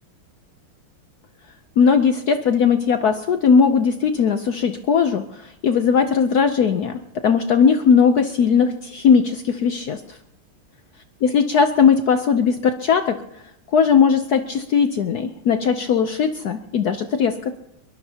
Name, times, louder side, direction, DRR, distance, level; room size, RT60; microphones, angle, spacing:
voice 1, 1.8-10.2 11.2-13.2 13.7-17.6, left 6 dB, 65° left, 8 dB, 0.9 m, -18 dB
22.5 x 20.5 x 2.8 m, 0.81 s
omnidirectional pair, 2.4 m